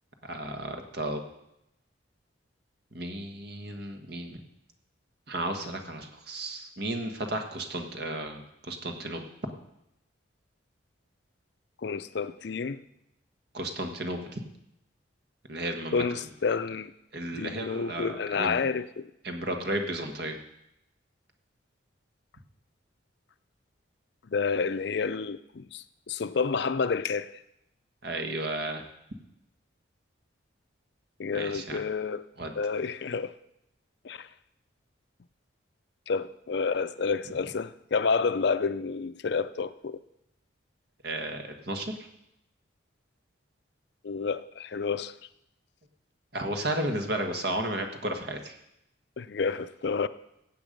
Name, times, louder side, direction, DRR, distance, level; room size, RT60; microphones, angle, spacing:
voice 1, 0.2-1.2 2.9-4.4 5.3-9.2 13.5-14.4 15.5-16.3 17.1-18.6 19.2-20.4 28.0-28.8 31.3-31.8 32.4-32.5 41.0-41.9 46.3-48.6, right 1 dB, 55° right, 1.4 m, -33 dB
voice 2, 11.8-12.8 15.9-16.9 17.4-19.1 24.3-27.3 31.2-32.2 32.6-33.3 34.0-34.3 36.1-40.0 44.0-45.1 49.2-50.1, left 5 dB, 60° left, 0.5 m, -29 dB
15.5 x 8.0 x 5.2 m
head